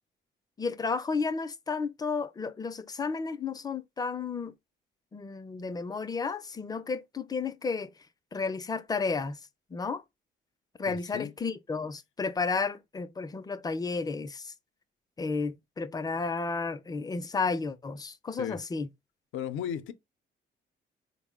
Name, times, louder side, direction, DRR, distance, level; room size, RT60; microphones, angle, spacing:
voice 1, 0.6-4.5 5.1-7.9 8.3-9.4 9.7-10.0 10.8-14.5 15.2-18.9, left 4 dB, 20° left, 0.4 m, -32 dB
voice 2, 10.9-11.3 18.4-18.6 19.3-19.9, left 9 dB, 80° left, 0.5 m, -35 dB
3.6 x 2.0 x 3.5 m
cardioid pair, 90°, 20 cm